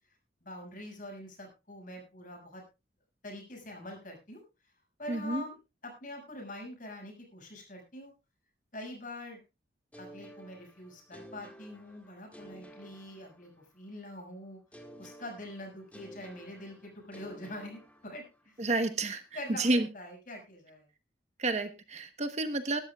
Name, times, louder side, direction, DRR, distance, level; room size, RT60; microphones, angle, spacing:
voice 1, 0.4-2.6 3.2-4.4 5.0-5.6 5.8-8.1 8.7-9.4 10.0-14.6 15.0-18.6 19.3-20.9, left 1 dB, 45° left, 1 dB, 6.1 m, -44 dB
voice 2, 5.1-5.4 18.6-19.2 19.5-19.9 21.4-22.8, right 2 dB, 35° right, 8 dB, 1.1 m, -30 dB
sound 1, 9.9-13.9 14.7-18.6, equal, 10° left, 1.8 m, -53 dB
21.0 x 12.5 x 2.4 m, 0.27 s
head